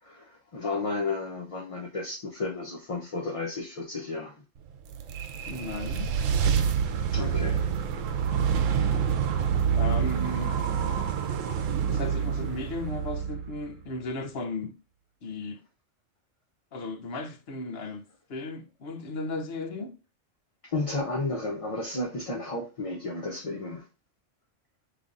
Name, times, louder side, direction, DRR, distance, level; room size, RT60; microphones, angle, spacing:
voice 1, 0.0-4.4 7.1-7.7 20.6-23.9, left 3 dB, 40° left, 0.5 m, -33 dB
sound 1, 4.7-14.0, right 7 dB, 90° right, 1.0 m, -27 dB
voice 2, 5.5-6.1 8.9-9.1 9.7-10.5 11.9-14.8 15.2-15.6 16.7-18.0 18.3-19.9, left 2 dB, 60° left, 0.9 m, -35 dB
5.2 x 3.3 x 2.4 m
omnidirectional pair, 1.3 m